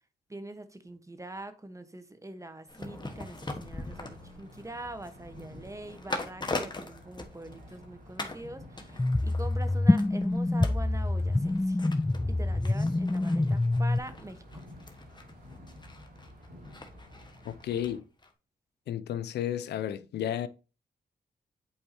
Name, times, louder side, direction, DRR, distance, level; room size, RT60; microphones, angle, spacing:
voice 1, 0.3-11.8 12.3-14.6, right 2 dB, 20° right, 1.1 m, -44 dB
sound 1, 2.7-7.9 8.2-8.5 8.8-17.9 18.2-18.3, left 2 dB, 25° left, 1.3 m, -42 dB
sound 2, 2.8-18.0, left 1 dB, 80° right, 3.3 m, -51 dB
sound 3, 9.0-14.0, left 2 dB, 10° left, 0.3 m, -26 dB
voice 2, 17.4-18.0 18.9-20.5, left 10 dB, 80° left, 0.4 m, -32 dB
8.3 x 4.6 x 2.8 m
supercardioid pair, 50°, 17 cm